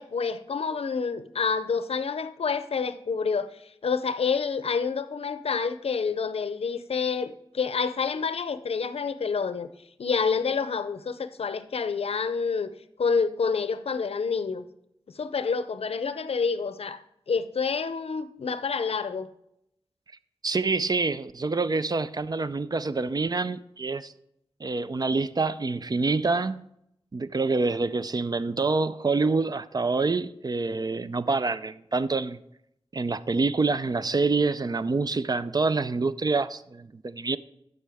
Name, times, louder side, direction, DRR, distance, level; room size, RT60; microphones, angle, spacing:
voice 1, 0.0-9.7 10.0-12.7 13.0-14.6 15.1-19.3, left 5 dB, 75° left, 0.5 m, -28 dB
voice 2, 20.4-24.1 24.6-26.7 27.1-32.4 32.9-37.4, right 3 dB, 40° right, 0.4 m, -26 dB
12.0 x 5.4 x 3.4 m
wide cardioid pair, 60°, 10 cm